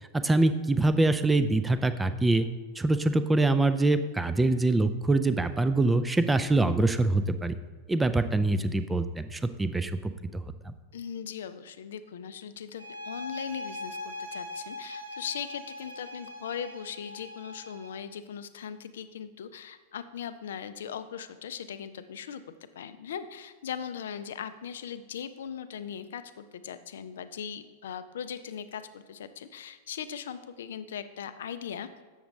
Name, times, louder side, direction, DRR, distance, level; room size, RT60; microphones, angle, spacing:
voice 1, 0.2-2.5 2.8-7.5 7.9-10.4, right 2 dB, 10° right, 12 dB, 0.4 m, -24 dB
voice 2, 10.9-22.4 22.7-31.9, left 8 dB, 60° left, 12 dB, 0.4 m, -39 dB
sound 1, 12.8-18.0, left 2 dB, 85° right, 0.8 m, -41 dB
7.2 x 6.9 x 3.1 m, 1.3 s
figure-of-eight pair, 90°, 0 cm